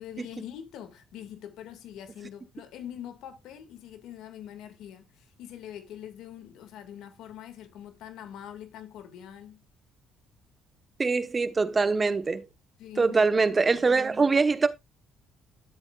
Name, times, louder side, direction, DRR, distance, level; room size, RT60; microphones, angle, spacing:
voice 1, 0.0-9.6 12.8-13.9, left 10 dB, 75° left, 2.1 m, -44 dB
voice 2, 11.0-12.5 13.0-14.7, right 4 dB, 30° right, 1.1 m, -23 dB
11.5 x 7.9 x 2.4 m
supercardioid pair, 80°, 0 cm